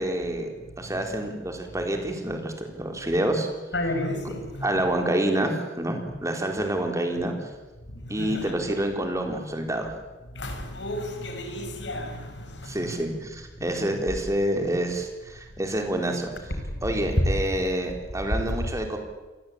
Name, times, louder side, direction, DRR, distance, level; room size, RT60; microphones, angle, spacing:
voice 1, 0.0-3.5 4.2-4.3 4.6-7.3 8.1-9.9 12.6-16.5 16.8-19.0, right 1 dB, 15° right, 4 dB, 4.1 m, -28 dB
voice 2, 0.8-1.2 3.7-4.7 7.9-8.5 10.3-13.0 16.7-17.2, left 1 dB, 80° left, 6 dB, 5.9 m, -31 dB
28.0 x 21.5 x 8.8 m, 1.2 s
head